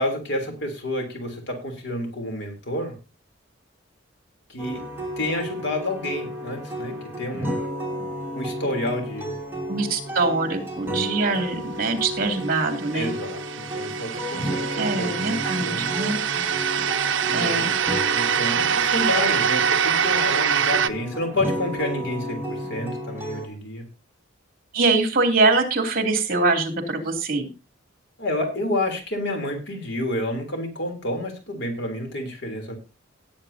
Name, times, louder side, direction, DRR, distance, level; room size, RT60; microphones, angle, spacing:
voice 1, 0.0-2.9 4.5-4.8 5.2-7.6 8.3-9.3 12.9-15.9 17.3-17.7 18.1-23.8 28.2-32.7, left 1 dB, 60° left, 4 dB, 3.3 m, -29 dB
sound 1, 4.6-23.5, equal, 10° right, 3.0 m, -32 dB
voice 2, 9.7-13.1 14.8-16.4 17.3-17.7 24.7-27.5, right 3 dB, 45° right, 5 dB, 2.9 m, -23 dB
sound 2, 12.5-20.9, right 7 dB, 70° right, 0.7 m, -24 dB
18.5 x 8.6 x 2.8 m, 0.29 s
head